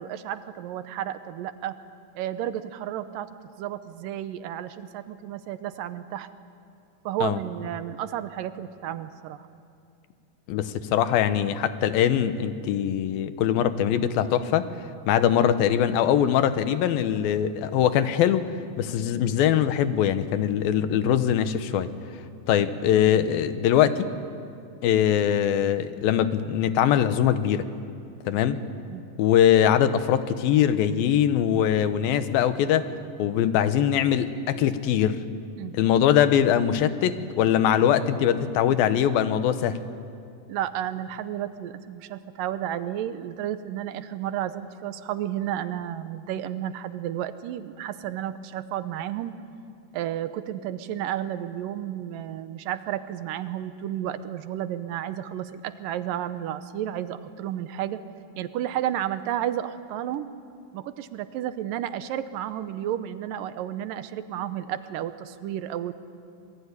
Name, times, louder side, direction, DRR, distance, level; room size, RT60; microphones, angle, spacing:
voice 1, 0.0-1.8 2.2-6.3 7.1-9.5 28.9-29.0 35.6-35.7 40.5-49.4 49.9-58.0 58.4-60.3 60.7-65.9, right 11 dB, 80° right, 12 dB, 2.4 m, -32 dB
voice 2, 10.5-14.7 15.1-18.5 18.8-21.9 22.5-24.1 24.8-27.7 28.3-28.6 29.2-32.9 33.2-35.2 35.7-39.8, left 10 dB, 85° left, 11 dB, 2.9 m, -22 dB
26.5 x 21.0 x 9.8 m, 2.5 s
omnidirectional pair, 4.1 m